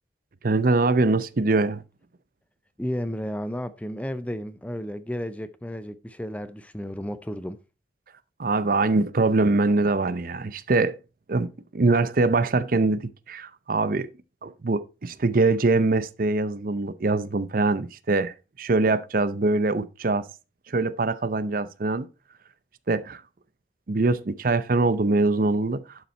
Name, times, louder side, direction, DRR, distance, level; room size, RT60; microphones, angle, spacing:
voice 1, 0.4-1.8 8.4-11.0 11.3-13.0 13.3-14.1 14.4-20.2 20.7-22.1 22.9-23.2 23.9-25.8, right 3 dB, 50° right, 0.6 m, -23 dB
voice 2, 2.8-7.6, equal, 10° left, 0.5 m, -32 dB
11.5 x 5.6 x 4.3 m
head